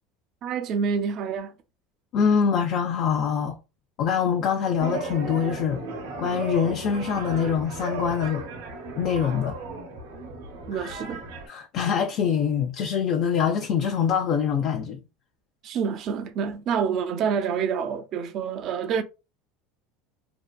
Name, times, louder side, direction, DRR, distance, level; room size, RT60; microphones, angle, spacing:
voice 1, 0.4-1.5 10.7-11.2 15.6-19.0, right 6 dB, 50° right, 0.4 m, -27 dB
voice 2, 2.1-3.6 4.0-5.8 6.2-8.4 9.0-9.6 10.7-10.9 11.5-15.0, left 7 dB, 55° left, 0.4 m, -24 dB
sound 1, 4.8-11.5, right 3 dB, 85° right, 0.8 m, -35 dB
2.7 x 2.2 x 2.2 m
supercardioid pair, 115°, 0 cm